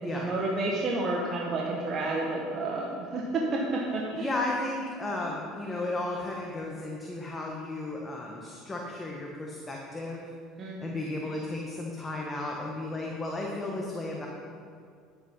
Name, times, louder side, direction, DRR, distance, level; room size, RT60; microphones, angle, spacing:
voice 1, 0.0-4.3 10.6-11.1, right 2 dB, 40° right, -2 dB, 1.5 m, -30 dB
voice 2, 4.1-10.2 10.8-14.3, left 2 dB, 20° left, -1 dB, 1.6 m, -34 dB
11.0 x 8.8 x 5.6 m, 2.3 s
supercardioid pair, 105°, 0 cm